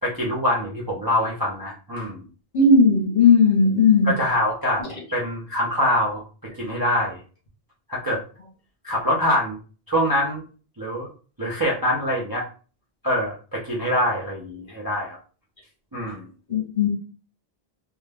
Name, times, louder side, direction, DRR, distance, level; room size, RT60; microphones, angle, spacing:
voice 1, 0.0-2.2 4.1-4.8 5.1-6.2 6.6-7.2 7.9-8.2 8.8-9.6 9.9-10.4 10.8-11.1 11.4-12.4 13.0-15.2 15.9-16.2, equal, 30° right, -4 dB, 0.5 m, -24 dB
voice 2, 2.5-4.2 16.5-16.9, left 4 dB, 45° left, -1 dB, 0.8 m, -16 dB
2.2 x 2.2 x 3.3 m, 0.37 s
omnidirectional pair, 1.1 m